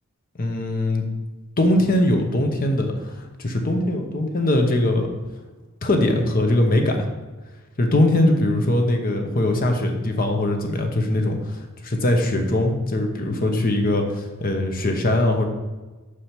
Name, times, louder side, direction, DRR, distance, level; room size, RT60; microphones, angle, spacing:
voice 1, 0.4-1.0 1.6-5.1 5.8-7.1 7.8-11.4 11.8-15.4, left 1 dB, 40° left, 4 dB, 0.9 m, -21 dB
5.7 x 4.9 x 5.9 m, 1.2 s
head